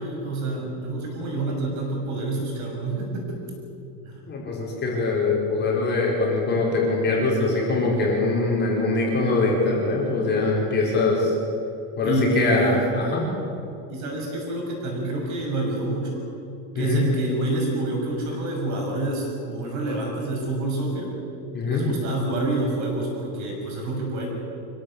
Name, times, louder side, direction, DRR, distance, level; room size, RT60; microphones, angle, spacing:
voice 1, 0.0-3.4 4.0-4.2 12.0-12.8 13.9-16.3 16.7-21.2 21.6-24.3, right 2 dB, 40° right, 0 dB, 6.7 m, -27 dB
voice 2, 4.3-11.4 12.0-13.2 16.7-17.0 21.5-21.8, left 3 dB, 25° left, -3 dB, 4.9 m, -23 dB
25.5 x 16.0 x 8.5 m, 2.7 s
cardioid pair, 175°, 44 cm